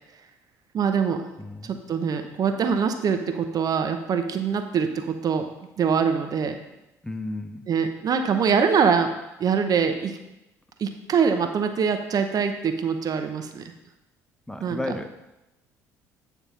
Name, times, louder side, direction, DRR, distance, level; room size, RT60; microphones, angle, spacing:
voice 1, 0.7-1.2 1.6-5.5 5.8-6.6 7.7-9.1 9.4-10.2 10.8-13.7 14.6-14.8, right 6 dB, 45° right, 7 dB, 0.8 m, -24 dB
voice 2, 1.4-1.8 7.0-7.7 14.5-15.1, left 1 dB, 5° left, 7 dB, 0.9 m, -33 dB
9.6 x 3.6 x 5.7 m, 0.95 s
hypercardioid pair, 60°, 8 cm